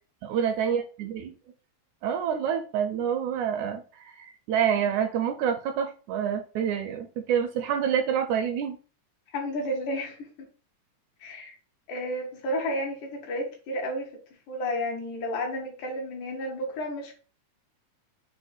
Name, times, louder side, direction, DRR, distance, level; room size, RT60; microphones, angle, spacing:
voice 1, 0.2-1.3 2.0-8.8, right 8 dB, 80° right, 6 dB, 1.8 m, -27 dB
voice 2, 9.3-10.5 11.2-11.5 11.9-14.1 14.5-17.1, equal, 80° left, 0 dB, 2.5 m, -32 dB
5.5 x 2.1 x 4.1 m, 0.37 s
omnidirectional pair, 3.6 m